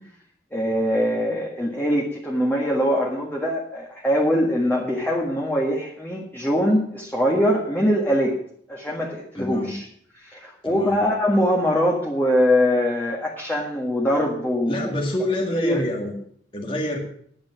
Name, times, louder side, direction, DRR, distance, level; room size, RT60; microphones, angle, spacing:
voice 1, 0.5-8.4 8.7-9.9 10.2-15.0 15.5-15.8, equal, 10° left, -2 dB, 1.7 m, -22 dB
voice 2, 9.4-9.7 10.6-11.0 14.7-16.1 16.5-17.0, left 1 dB, 30° left, 0 dB, 2.0 m, -27 dB
10.5 x 8.8 x 7.3 m, 0.63 s
head